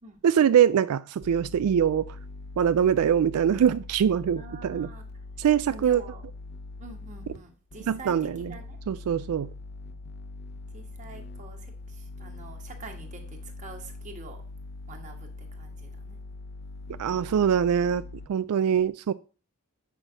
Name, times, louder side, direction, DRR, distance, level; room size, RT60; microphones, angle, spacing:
voice 1, 0.2-2.1 2.6-4.9 5.4-6.0 7.9-8.5 8.9-9.5 17.0-18.0 18.3-19.1, right 8 dB, 85° right, 14 dB, 0.3 m, -23 dB
sound 1, 1.2-7.4 7.7-18.3, left 3 dB, 45° left, 0.6 m, -42 dB
voice 2, 4.4-5.1 5.7-6.3 6.8-8.8 10.7-14.4 14.9-16.2 18.8-18.9, right 3 dB, 35° right, 2 dB, 1.6 m, -46 dB
8.0 x 5.8 x 5.0 m, 0.37 s
head